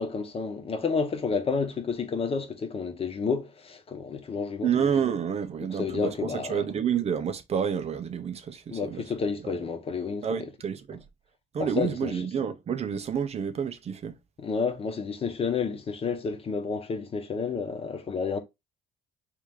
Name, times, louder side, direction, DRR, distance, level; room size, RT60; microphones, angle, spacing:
voice 1, 0.0-4.7 5.6-6.6 8.7-10.5 11.6-12.1 14.4-18.4, left 5 dB, 35° left, 1.1 m, -30 dB
voice 2, 4.6-9.0 10.2-11.0 11.5-14.2, right 7 dB, 40° right, 0.6 m, -29 dB
3.3 x 3.3 x 3.5 m
cardioid pair, 110°, 17 cm